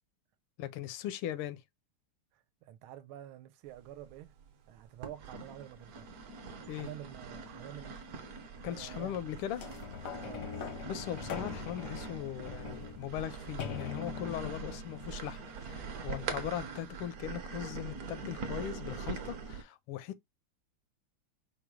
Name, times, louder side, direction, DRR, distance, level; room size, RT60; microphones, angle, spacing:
voice 1, 0.6-1.6 6.7-6.9 8.6-9.6 10.9-20.3, left 11 dB, 85° left, 1.5 m, -39 dB
voice 2, 2.3-4.3 4.7-6.1 6.6-8.1 8.6-9.3 10.2-10.7, right 12 dB, 80° right, 1.4 m, -49 dB
sound 1, 3.8-4.5 5.0-19.6, right 5 dB, 60° right, 1.1 m, -43 dB
sound 2, 9.6-16.3 17.0-17.1, left 6 dB, 70° left, 0.8 m, -43 dB
4.7 x 2.2 x 4.7 m
omnidirectional pair, 2.3 m